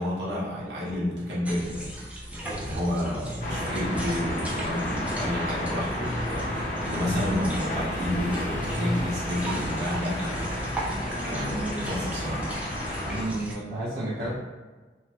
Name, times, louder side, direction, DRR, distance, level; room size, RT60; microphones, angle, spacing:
voice 1, 0.0-1.9 2.4-10.5 11.2-12.5 13.3-13.5 14.2-14.3, left 1 dB, 85° right, -7 dB, 0.9 m, -30 dB
sound 1, 1.4-13.5, right 1 dB, 10° right, 0.3 m, -38 dB
sound 2, 3.4-13.3, left 1 dB, 45° left, 0.6 m, -31 dB
voice 2, 13.1-14.3, right 1 dB, 60° right, -9 dB, 0.8 m, -31 dB
3.1 x 2.0 x 2.9 m, 1.3 s
head